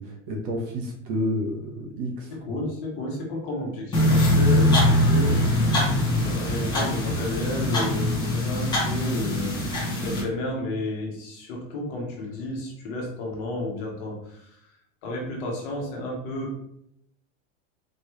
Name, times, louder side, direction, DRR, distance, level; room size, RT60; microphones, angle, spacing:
voice 1, 0.0-2.6, equal, 45° right, 0 dB, 1.0 m, -30 dB
voice 2, 2.3-5.5 6.1-9.6 10.0-14.6 15.0-16.6, left 1 dB, 45° left, -2 dB, 1.4 m, -32 dB
sound 1, 3.9-10.2, left 1 dB, 10° left, 1.1 m, -22 dB
4.5 x 3.1 x 3.2 m, 0.75 s
supercardioid pair, 170°, 37 cm